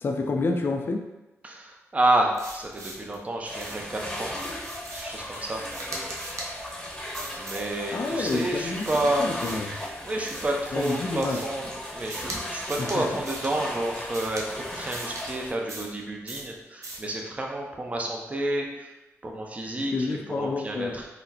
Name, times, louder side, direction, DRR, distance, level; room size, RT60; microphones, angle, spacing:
voice 1, 0.0-1.0 7.9-8.9 9.2-9.8 10.7-11.4 12.8-13.0 19.9-21.0, left 3 dB, 45° left, 3 dB, 0.3 m, -28 dB
voice 2, 1.4-4.4 4.9-5.6 7.4-9.3 10.0-18.9 19.2-21.1, right 1 dB, 25° right, 1 dB, 0.5 m, -29 dB
sound 1, 2.3-3.2 3.6-3.9 4.3-5.2 5.7-6.5 7.1-7.7 8.2-9.8 10.3-11.6 12.1-12.4 12.6-13.0 13.3-13.5 14.1-14.5 14.9-15.2 15.7-16.0 16.3-16.5 16.8-17.1, right 2 dB, 70° right, 0.6 m, -40 dB
sound 2, 3.4-15.5, left 1 dB, 10° left, 0.8 m, -37 dB
3.9 x 2.1 x 2.8 m, 1.0 s
cardioid pair, 85°, 5 cm